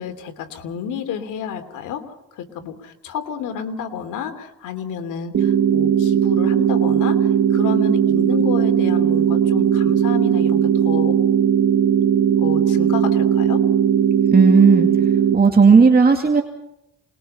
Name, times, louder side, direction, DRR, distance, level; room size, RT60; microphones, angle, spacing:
voice 1, 0.0-11.2 12.4-13.6, left 7 dB, 90° left, 7 dB, 2.9 m, -31 dB
sound 1, 5.3-15.4, right 8 dB, 50° right, 1.4 m, -18 dB
voice 2, 14.3-14.9 15.3-16.4, right 5 dB, 30° right, 3 dB, 2.4 m, -13 dB
28.0 x 21.0 x 5.6 m, 0.84 s
cardioid pair, 90°, 30 cm